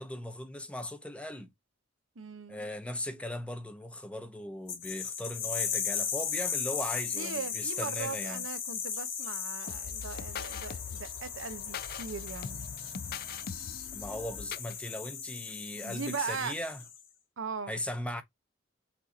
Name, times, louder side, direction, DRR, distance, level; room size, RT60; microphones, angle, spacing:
voice 1, 0.0-1.5 2.5-8.4 13.9-16.8 17.7-18.2, left 1 dB, 5° left, 0.6 m, -38 dB
voice 2, 2.2-2.7 7.1-12.7 15.8-16.6 17.4-17.7, right 5 dB, 80° right, 0.8 m, -39 dB
sound 1, 4.7-17.0, left 7 dB, 80° left, 2.0 m, -37 dB
sound 2, 9.7-14.8, left 7 dB, 50° left, 0.4 m, -42 dB
6.1 x 2.6 x 2.7 m
head